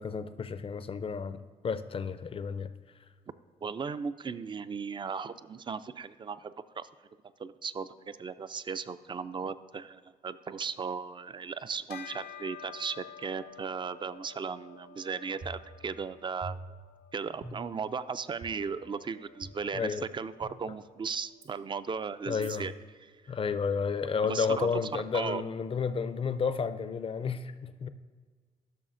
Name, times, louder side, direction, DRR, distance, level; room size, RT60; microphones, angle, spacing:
voice 1, 0.0-2.7 19.7-20.0 22.3-22.7 23.3-27.9, left 5 dB, 35° left, 0.5 m, -32 dB
voice 2, 3.6-6.9 7.4-16.6 17.1-22.7 23.0-23.3 24.2-25.4, right 5 dB, 30° right, 0.3 m, -36 dB
Bell, 11.9-21.6, left 7 dB, 85° left, 0.6 m, -51 dB
sound 1, 15.4-16.1 16.4-17.0 17.4-17.9 18.4-18.5 19.4-19.5 20.4-20.5 21.4-21.5 22.4-22.5, right 2 dB, 65° right, 1.4 m, -44 dB
12.5 x 6.1 x 2.5 m
cardioid pair, 70°, 16 cm